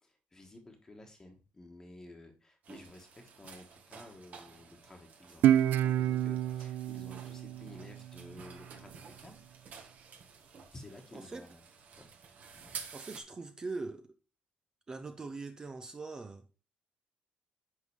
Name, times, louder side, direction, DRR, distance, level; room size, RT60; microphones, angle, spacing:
voice 1, 0.0-9.4 10.7-11.6 12.0-12.1 12.5-12.8, left 2 dB, 15° left, 1.5 m, -53 dB
sound 1, 2.6-13.2, right 6 dB, 50° right, 1.5 m, -51 dB
Guitar, 5.4-8.6, right 11 dB, 75° right, 0.4 m, -29 dB
voice 2, 11.1-11.5 12.9-14.2 14.9-16.6, right 3 dB, 20° right, 0.7 m, -42 dB
10.5 x 3.9 x 4.7 m
cardioid pair, 145°, 3 cm